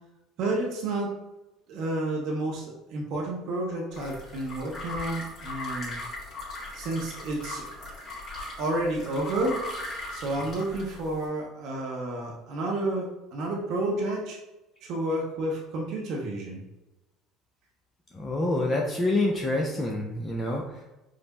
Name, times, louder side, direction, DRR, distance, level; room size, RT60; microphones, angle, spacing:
voice 1, 0.4-1.1 1.7-6.0 6.7-7.9 8.6-9.6 10.1-14.4 14.8-16.6, right 2 dB, 55° right, -1 dB, 0.7 m, -30 dB
sound 1, 3.9-11.3, left 2 dB, 45° left, 1.4 m, -39 dB
voice 2, 18.1-20.8, left 2 dB, 25° left, 0 dB, 0.5 m, -27 dB
5.0 x 2.0 x 2.9 m, 0.99 s
figure-of-eight pair, 60°, 0 cm